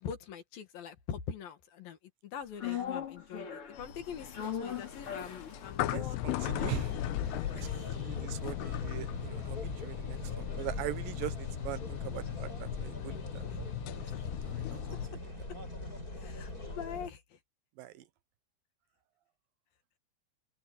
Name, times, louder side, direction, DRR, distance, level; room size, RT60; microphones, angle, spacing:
voice 1, 0.0-2.0 2.2-6.8 7.6-7.9 13.5-13.6 14.0-14.1 16.2-17.4, left 7 dB, 65° left, 3.5 m, -43 dB
sound 1, 2.6-10.9 11.2-11.3, left 8 dB, 35° left, 3.4 m, -43 dB
sound 2, 3.8-15.1, left 14 dB, 85° left, 3.1 m, -38 dB
voice 2, 5.9-6.9 7.5-7.7 8.0-13.4 14.5-14.8 17.8-18.0, right 14 dB, 70° right, 2.4 m, -41 dB
sound 3, 6.5-17.1, left 2 dB, 20° left, 6.4 m, -42 dB
open air
omnidirectional pair, 4.6 m